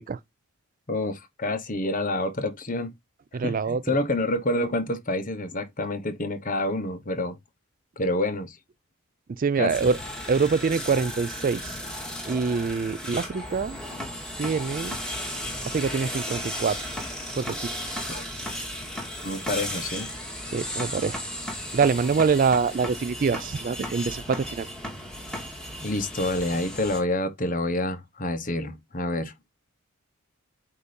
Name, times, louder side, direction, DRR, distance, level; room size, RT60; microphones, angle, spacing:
voice 1, 0.9-2.9 3.4-7.4 8.0-8.6 9.6-9.7 18.1-18.2 19.2-20.1 25.8-29.3, left 1 dB, 40° left, 1.1 m, -28 dB
voice 2, 3.3-4.0 9.3-10.0 10.3-11.8 12.3-13.8 14.4-15.0 15.6-16.9 17.3-17.6 20.5-21.2 21.7-24.7, right 5 dB, 40° right, 0.3 m, -25 dB
sound 1, 9.7-27.0, equal, 5° left, 1.8 m, -35 dB
8.2 x 2.8 x 5.1 m
head